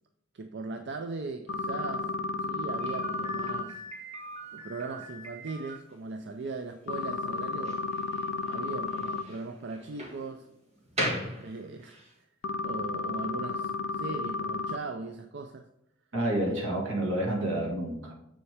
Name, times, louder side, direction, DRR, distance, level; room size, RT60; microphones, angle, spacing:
voice 1, 0.3-2.1 2.4-3.8 4.5-7.8 8.5-10.5 11.4-12.0 12.6-15.6 16.4-16.8, right 3 dB, 60° right, 6 dB, 0.5 m, -39 dB
sound 1, 1.5-3.6 6.9-9.2 12.4-14.8, left 3 dB, 90° left, 0.5 m, -32 dB
Slam, 2.8-12.1, right 1 dB, 35° right, 1.7 m, -40 dB
voice 2, 16.1-18.1, right 1 dB, 80° right, 0 dB, 1.9 m, -29 dB
7.5 x 7.0 x 3.5 m, 0.80 s
head